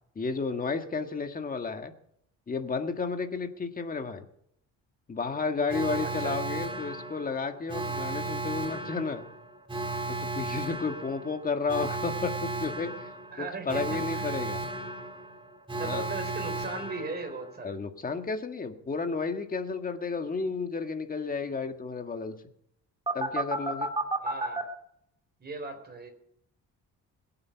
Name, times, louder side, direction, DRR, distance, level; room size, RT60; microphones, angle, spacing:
voice 1, 0.2-1.9 2.5-4.3 5.1-9.3 10.1-13.1 13.4-14.6 15.8-16.1 17.6-22.3 23.1-23.9, left 4 dB, 25° left, 6 dB, 1.7 m, -32 dB
Alarm, 5.7-17.6 23.1-24.6, right 2 dB, 15° right, 2.7 m, -34 dB
voice 2, 6.0-6.4 13.3-14.3 15.8-17.8 24.2-24.6 25.4-26.1, right 3 dB, 30° right, 5 dB, 4.1 m, -38 dB
22.0 x 8.7 x 5.9 m, 0.71 s
cardioid pair, 125°, 32 cm